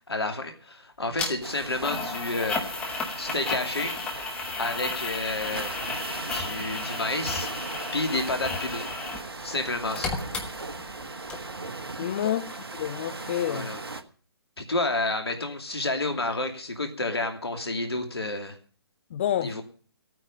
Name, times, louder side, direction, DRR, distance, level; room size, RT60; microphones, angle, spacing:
voice 1, 0.1-2.7 3.1-3.9 4.6-5.7 6.3-7.5 7.9-8.8 9.4-10.2 12.2-12.4 13.5-13.8 14.6-18.6 19.4-19.6, left 2 dB, 70° left, 2.5 m, -30 dB
sound 1, 1.2-1.3 1.8-9.3 9.6-11.0 11.3-11.4, left 3 dB, 5° left, 1.4 m, -33 dB
sound 2, 1.4-14.0, right 3 dB, 65° right, 1.4 m, -38 dB
voice 2, 12.0-13.7 19.1-19.6, left 11 dB, 25° left, 0.6 m, -29 dB
15.0 x 9.3 x 6.3 m
figure-of-eight pair, 140°, 14 cm